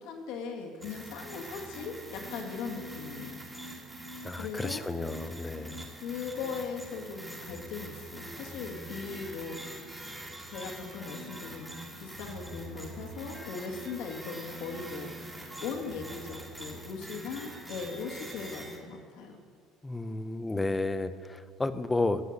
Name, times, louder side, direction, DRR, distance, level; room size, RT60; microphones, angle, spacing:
voice 1, 0.0-3.4 4.3-4.8 6.0-9.6 10.5-15.1 15.6-19.4, left 5 dB, 75° left, 1 dB, 2.2 m, -39 dB
sound 1, 0.8-18.8, right 1 dB, 10° right, 2.2 m, -44 dB
voice 2, 4.2-5.9 19.8-22.2, left 2 dB, 10° left, 12 dB, 0.6 m, -32 dB
13.5 x 8.3 x 8.1 m, 2.2 s
cardioid pair, 145°, 0 cm